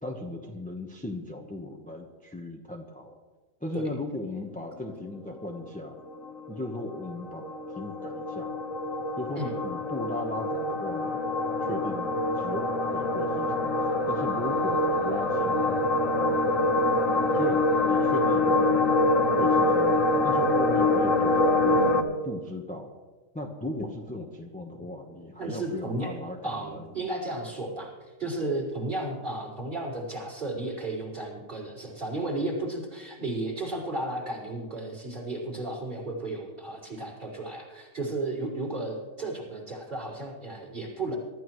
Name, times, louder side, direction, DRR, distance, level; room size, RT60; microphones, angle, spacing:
voice 1, 0.0-3.2 3.6-5.9 6.5-7.4 7.7-8.6 9.2-11.3 11.6-13.7 14.1-16.4 17.3-18.9 19.4-19.9 20.2-22.9 23.3-26.9, left 1 dB, 5° left, 1 dB, 0.8 m, -37 dB
sound 1, 5.4-22.0, left 2 dB, 55° left, 1.6 m, -25 dB
voice 2, 25.4-26.1 26.4-27.9 28.2-41.2, right 2 dB, 30° right, -4 dB, 5.0 m, -33 dB
24.0 x 13.0 x 3.2 m, 1.3 s
omnidirectional pair, 1.8 m